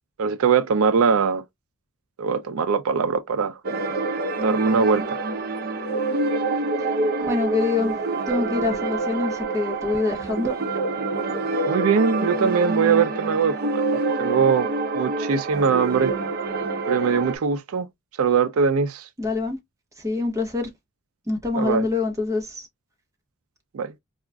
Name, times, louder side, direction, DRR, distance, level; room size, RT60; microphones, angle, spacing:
voice 1, 0.2-1.4 2.2-3.6 4.4-5.2 11.7-14.7 14.9-16.1 16.9-17.9 18.2-19.1 21.5-21.9 23.7-23.9, right 6 dB, 85° right, 0.4 m, -21 dB
sound 1, 3.6-17.4, right 3 dB, 45° right, 0.7 m, -26 dB
voice 2, 7.2-8.0 8.3-10.6 19.2-19.6 20.0-20.7 21.3-22.7, left 3 dB, 15° right, 1.0 m, -25 dB
4.7 x 2.4 x 2.2 m
head